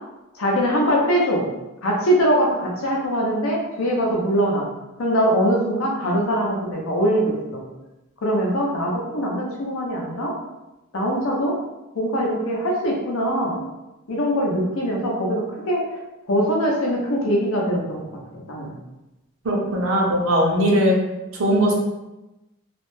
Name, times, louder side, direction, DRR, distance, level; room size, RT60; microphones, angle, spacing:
voice 1, 0.4-1.5 1.8-4.7 5.0-7.6 8.2-10.3 10.9-11.6 11.9-13.6 14.1-15.8 16.3-18.0 18.4-18.7, equal, 70° left, -1 dB, 0.6 m, -22 dB
voice 2, 19.4-21.0 21.4-21.7, equal, 65° right, -1 dB, 0.6 m, -19 dB
2.4 x 2.1 x 3.1 m, 0.99 s
head